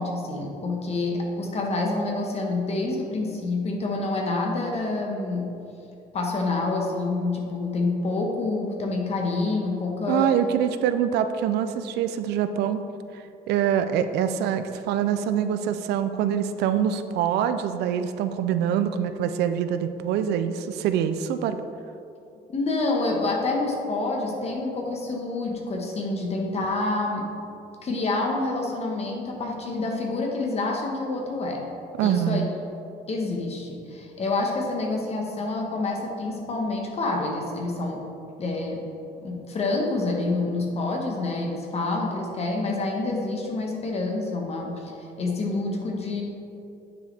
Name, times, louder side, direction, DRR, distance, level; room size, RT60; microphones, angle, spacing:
voice 1, 0.0-5.5 6.1-10.3 22.5-27.3 27.8-31.7 32.0-32.4 33.1-38.0 38.4-38.9 39.2-46.2, left 2 dB, 40° left, 0 dB, 1.2 m, -27 dB
voice 2, 10.1-12.8 13.5-21.6 32.0-32.5, right 9 dB, 80° right, 10 dB, 0.4 m, -25 dB
9.2 x 4.8 x 3.4 m, 2.7 s
cardioid pair, 110°, 17 cm